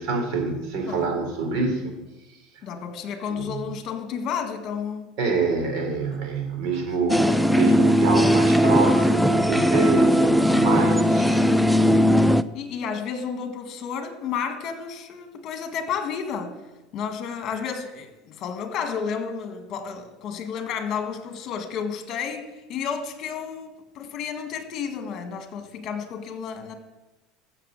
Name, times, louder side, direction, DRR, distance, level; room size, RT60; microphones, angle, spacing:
voice 1, 0.0-1.9 2.3-2.4 3.3-3.7 5.2-11.4, right 4 dB, 55° right, 3 dB, 3.6 m, -26 dB
voice 2, 2.6-5.1 6.1-6.2 6.6-6.8 12.5-16.6 16.9-26.8, left 6 dB, 40° left, 6 dB, 1.9 m, -31 dB
sound 1, 7.1-12.4, equal, ahead, 0.4 m, -18 dB
14.0 x 7.2 x 6.7 m, 1.1 s
cardioid pair, 150°, 0 cm